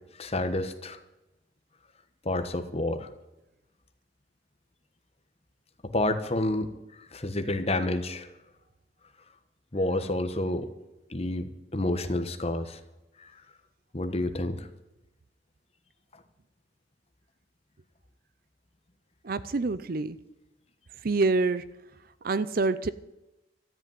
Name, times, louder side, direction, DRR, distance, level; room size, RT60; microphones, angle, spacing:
voice 1, 0.1-1.0 2.2-3.1 5.8-8.3 9.7-10.7 11.1-12.8 13.2-13.3 13.9-14.7, left 1 dB, 35° left, 8 dB, 1.2 m, -29 dB
voice 2, 19.2-20.2 21.0-21.6 22.2-22.9, right 3 dB, 50° right, 15 dB, 0.5 m, -26 dB
13.5 x 8.3 x 9.3 m, 0.96 s
head